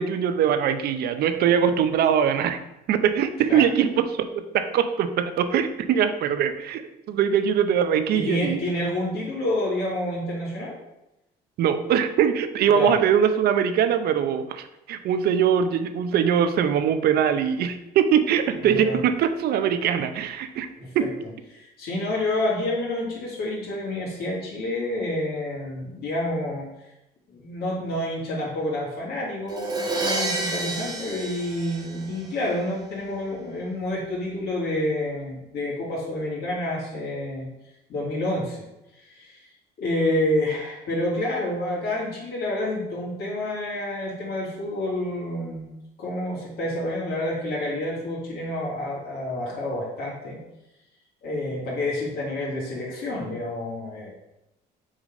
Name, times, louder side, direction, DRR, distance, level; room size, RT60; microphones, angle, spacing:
voice 1, 0.0-2.6 2.9-6.8 7.1-8.6 11.6-20.7 20.9-21.1, right 8 dB, 70° right, 10 dB, 0.6 m, -22 dB
voice 2, 8.1-10.8 12.7-13.0 18.7-19.0 20.8-21.1 21.5-26.7 27.3-37.5 37.9-38.6 38.9-39.5 39.8-45.7 46.0-50.4 51.2-54.1, left 1 dB, 70° left, -5 dB, 2.4 m, -28 dB
Crash cymbal, 29.5-32.4, right 2 dB, 25° right, 1.3 m, -29 dB
6.2 x 4.0 x 5.1 m, 0.90 s
cardioid pair, 110°, 17 cm